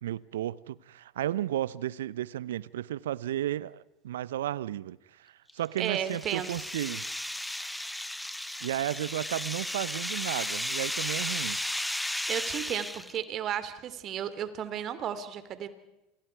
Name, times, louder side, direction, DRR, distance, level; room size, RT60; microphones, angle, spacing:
voice 1, 0.0-7.1 8.6-11.6, right 12 dB, 75° right, 0.8 m, -33 dB
sound 1, 5.5-13.2, left 1 dB, 5° left, 0.8 m, -34 dB
voice 2, 5.8-6.5 12.3-15.7, right 9 dB, 45° right, 3.0 m, -33 dB
29.5 x 28.0 x 4.8 m
figure-of-eight pair, 75°, 0 cm